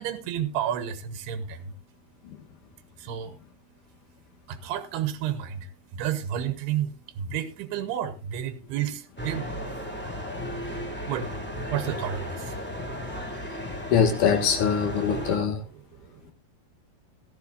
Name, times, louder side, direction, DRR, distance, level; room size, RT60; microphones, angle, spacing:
voice 1, 0.0-1.8 3.0-3.4 3.9-4.0 4.4-13.9 15.8-16.3, right 10 dB, 85° right, 3.0 m, -33 dB
sound 1, 9.2-15.4, equal, 5° left, 1.6 m, -35 dB
voice 2, 13.9-15.6, left 7 dB, 60° left, 3.0 m, -23 dB
16.0 x 13.0 x 2.6 m
omnidirectional pair, 4.5 m